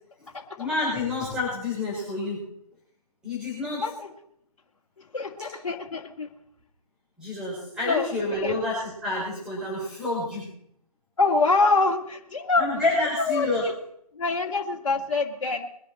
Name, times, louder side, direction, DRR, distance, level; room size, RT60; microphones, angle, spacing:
voice 1, 0.6-2.4 3.2-3.8 5.4-5.6 7.2-10.5 12.5-13.6, left 2 dB, 5° right, -8 dB, 4.7 m, -28 dB
voice 2, 5.1-6.3 7.8-8.1 8.4-8.5 11.2-12.7 13.1-13.5 14.2-15.7, left 3 dB, 55° left, 0 dB, 2.1 m, -25 dB
22.5 x 9.9 x 4.3 m, 0.71 s
figure-of-eight pair, 140°, 20 cm